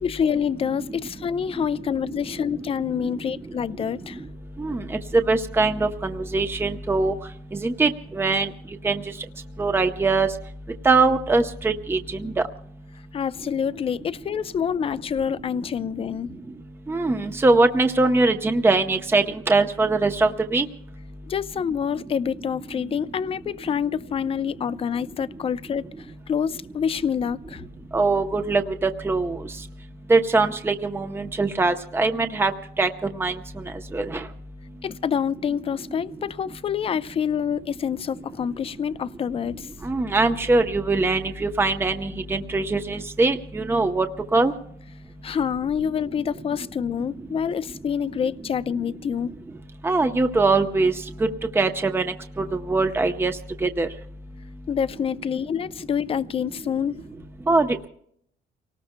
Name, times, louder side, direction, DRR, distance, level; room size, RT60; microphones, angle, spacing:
voice 1, 0.0-4.2 13.1-16.3 21.3-27.6 34.8-39.7 45.2-49.3 54.7-56.9, left 7 dB, 35° left, 0.5 m, -27 dB
voice 2, 5.1-7.1 7.6-8.5 8.8-9.0 9.6-10.3 10.8-12.3 16.9-20.7 27.9-29.4 30.1-32.5 32.8-32.9 33.2-33.3 33.9-34.2 39.8-44.1 44.3-44.5 49.8-50.9 51.2-51.3 51.6-52.1 52.5-53.3 53.6-53.9 57.5-57.7, right 3 dB, 15° right, 0.8 m, -21 dB
29.5 x 19.0 x 2.2 m
cardioid pair, 110°, 17 cm